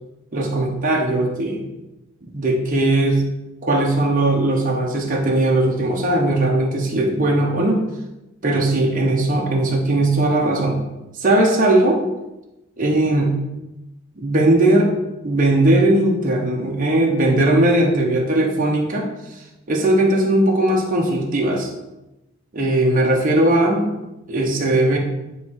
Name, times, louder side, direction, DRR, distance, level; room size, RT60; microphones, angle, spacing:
voice 1, 0.3-1.6 2.3-3.2 3.6-7.8 8.4-10.8 11.2-12.0 12.8-13.4 14.2-14.9 15.2-19.1 19.7-21.7 22.5-23.9 24.3-25.0, right 1 dB, 40° right, -1 dB, 1.0 m, -18 dB
9.2 x 3.1 x 4.7 m, 0.98 s
head